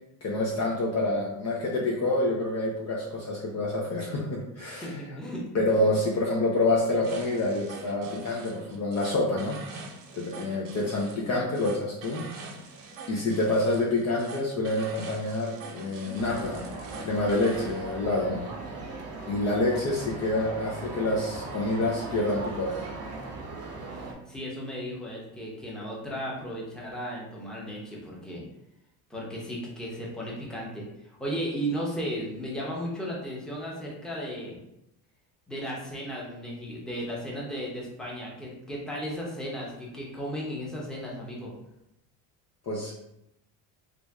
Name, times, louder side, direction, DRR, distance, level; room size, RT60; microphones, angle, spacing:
voice 1, 0.2-5.0 5.5-9.6 10.2-12.2 13.1-16.6 17.0-18.4 19.3-22.7 42.7-42.9, left 2 dB, 35° left, -3 dB, 0.6 m, -27 dB
voice 2, 4.8-5.8 23.9-28.4 29.1-30.9 31.2-34.6 35.5-41.5, equal, ahead, -4 dB, 0.9 m, -35 dB
sound 1, 7.0-17.8, right 3 dB, 80° right, 0.8 m, -44 dB
sound 2, 16.2-24.1, right 3 dB, 35° right, 0.8 m, -38 dB
3.1 x 2.6 x 3.4 m, 0.84 s
supercardioid pair, 115°, 46 cm